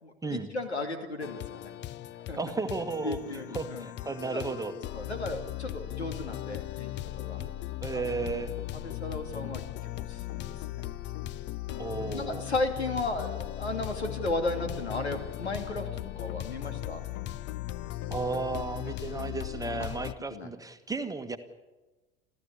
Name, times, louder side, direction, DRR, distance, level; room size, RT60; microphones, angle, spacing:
voice 1, 0.0-1.7 2.3-2.4 3.0-3.9 4.3-4.4 4.9-7.4 7.9-8.5 8.7-10.8 11.7-17.0 20.3-20.5, left 2 dB, 80° left, 6 dB, 2.7 m, -35 dB
sound 1, 1.2-20.1, left 14 dB, 35° left, 0.7 m, -38 dB
voice 2, 2.4-4.7 7.4-7.5 7.8-8.5 11.8-12.5 18.1-21.4, right 4 dB, 10° right, 8 dB, 1.6 m, -34 dB
29.5 x 14.0 x 8.4 m, 1.1 s
figure-of-eight pair, 75°, 32 cm